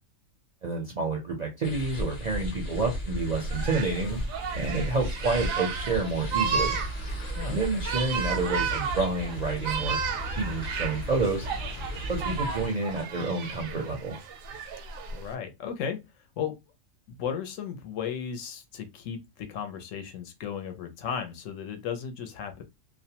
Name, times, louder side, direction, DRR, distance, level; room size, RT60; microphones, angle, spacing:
voice 1, 0.6-4.2 4.5-6.8 7.5-10.0 10.4-11.5 12.1-14.2, right 3 dB, 55° right, 0.5 m, -29 dB
sound 1, 1.6-12.7, equal, 45° left, 0.8 m, -35 dB
sound 2, 3.5-15.3, right 6 dB, 85° right, 1.0 m, -33 dB
voice 2, 15.1-16.5 17.2-22.6, left 7 dB, 75° left, 0.9 m, -35 dB
2.4 x 2.0 x 2.8 m
omnidirectional pair, 1.4 m